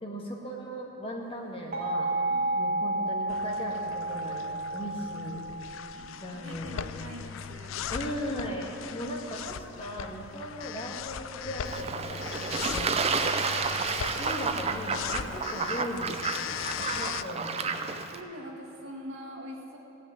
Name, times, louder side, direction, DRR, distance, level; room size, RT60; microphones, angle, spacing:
voice 1, 0.0-2.1 2.6-5.4 6.2-7.3 7.9-13.0 14.0-16.2 16.8-17.8, equal, 25° left, -1 dB, 1.6 m, -38 dB
sound 1, 1.7-6.4, right 2 dB, 45° right, 2.0 m, -31 dB
sound 2, 3.3-17.2, left 8 dB, 70° left, 0.4 m, -39 dB
voice 2, 5.9-7.8 13.2-13.5 18.1-19.8, equal, 70° right, 0 dB, 1.9 m, -44 dB
Fowl / Bird / Water, 11.6-18.2, right 4 dB, 30° right, 0.5 m, -31 dB
16.0 x 6.5 x 9.1 m, 3.0 s
head